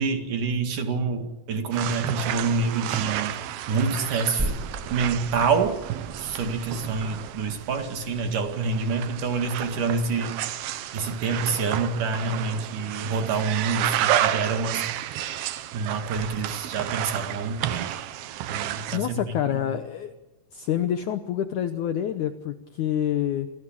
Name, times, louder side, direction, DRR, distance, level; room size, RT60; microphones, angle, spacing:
voice 1, 0.0-4.5 4.9-5.8 6.2-14.8 15.3-15.4 15.7-18.0 18.5-19.6, right 4 dB, 55° right, 6 dB, 3.4 m, -27 dB
sound 1, 1.7-19.0, right 12 dB, 75° right, 2.8 m, -31 dB
sound 2, 4.4-11.7 12.0-12.1, right 1 dB, 5° right, 1.7 m, -38 dB
voice 2, 18.9-20.1 20.5-23.5, left 10 dB, 70° left, 9 dB, 1.9 m, -27 dB
28.0 x 19.0 x 8.9 m, 1.0 s
omnidirectional pair, 4.6 m